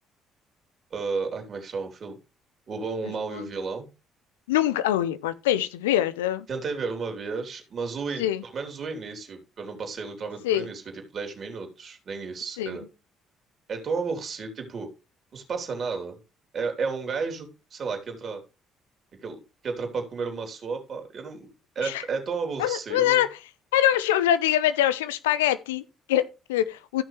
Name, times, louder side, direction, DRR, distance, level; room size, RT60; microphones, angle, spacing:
voice 1, 0.9-2.2 2.7-3.9 6.5-12.8 13.7-14.9 15.3-16.2 16.5-18.4 19.1-21.5 21.7-23.2, right 4 dB, 45° right, 3.5 m, -32 dB
voice 2, 4.5-6.5 8.2-8.4 10.4-10.7 12.6-12.8 21.8-22.0 22.6-23.3 23.7-27.0, left 12 dB, 80° left, 0.6 m, -24 dB
14.5 x 6.2 x 3.2 m
hypercardioid pair, 50°, 0 cm